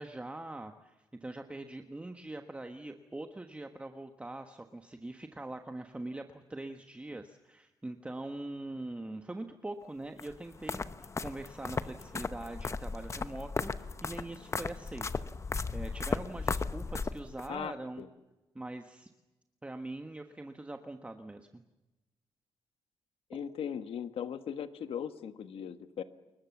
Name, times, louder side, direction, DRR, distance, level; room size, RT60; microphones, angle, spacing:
voice 1, 0.0-15.1 15.7-18.0 18.5-19.1 19.6-21.6, right 2 dB, 15° right, 6 dB, 1.3 m, -43 dB
sound 1, 10.2-17.5, left 4 dB, 30° left, 1.0 m, -36 dB
voice 2, 17.5-18.1 23.3-26.0, left 8 dB, 75° left, 10 dB, 1.4 m, -38 dB
29.5 x 22.0 x 7.2 m, 1.0 s
cardioid pair, 120°, 10 cm